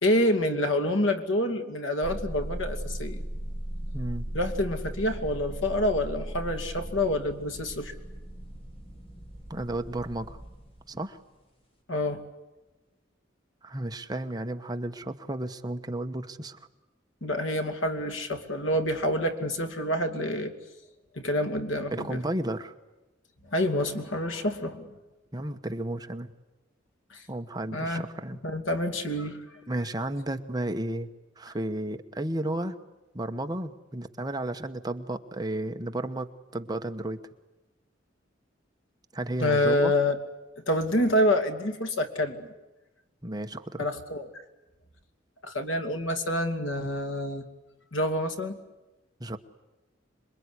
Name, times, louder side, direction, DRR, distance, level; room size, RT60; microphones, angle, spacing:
voice 1, 0.0-3.2 4.3-7.9 11.9-12.2 17.2-20.5 21.1-22.2 23.5-24.9 27.1-27.2 27.7-28.1 28.4-29.4 39.4-40.2 40.7-42.5 43.8-44.3 45.4-47.4 47.9-48.6, left 1 dB, 90° left, 6 dB, 2.6 m, -27 dB
sound 1, 2.0-10.9, right 1 dB, 30° left, 3.7 m, -38 dB
voice 2, 3.9-4.3 9.5-10.4 10.9-11.2 13.6-16.6 21.9-22.7 25.3-26.3 27.3-28.4 29.7-31.1 31.4-32.8 33.1-37.2 39.1-39.9 43.2-43.9 49.2-49.4, right 1 dB, 20° right, 7 dB, 1.2 m, -33 dB
27.0 x 22.5 x 9.9 m, 1.1 s
head